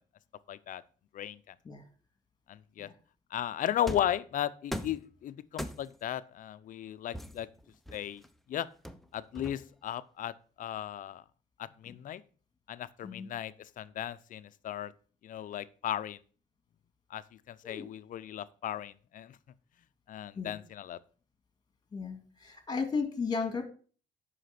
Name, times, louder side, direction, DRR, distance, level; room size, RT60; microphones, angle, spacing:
voice 1, 0.5-0.8 1.1-1.5 2.5-2.9 3.3-7.5 7.9-8.2 8.5-8.7 9.1-11.2 11.6-12.2 12.7-14.9 15.2-16.2 17.1-19.4 20.1-21.0, left 11 dB, 50° left, 15 dB, 0.6 m, -36 dB
sound 1, 3.9-4.2 4.7-5.1 5.6-6.1 7.1-8.3 8.8-9.9, equal, ahead, 0.6 m, -40 dB
voice 2, 21.9-23.6, left 5 dB, 25° left, 7 dB, 2.2 m, -35 dB
8.1 x 5.8 x 5.9 m, 0.41 s
cardioid pair, 110°, 17 cm